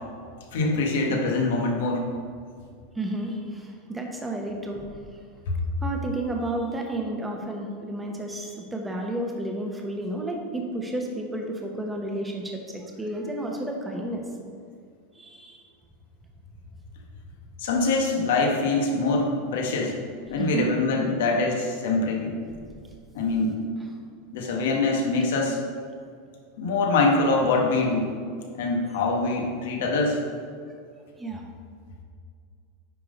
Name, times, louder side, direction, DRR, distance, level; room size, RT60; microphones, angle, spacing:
voice 1, 0.5-2.0 5.5-5.6 17.6-20.0 20.3-22.3 23.1-23.6 24.3-25.6 26.6-28.1 28.6-30.2, left 3 dB, 80° left, 0 dB, 1.5 m, -24 dB
voice 2, 2.9-5.0 5.8-14.2 15.1-15.6 20.4-20.7 22.6-22.7 31.2-31.4, right 1 dB, 10° right, 1 dB, 1.0 m, -31 dB
9.6 x 3.7 x 5.3 m, 2.2 s
supercardioid pair, 155°, 0 cm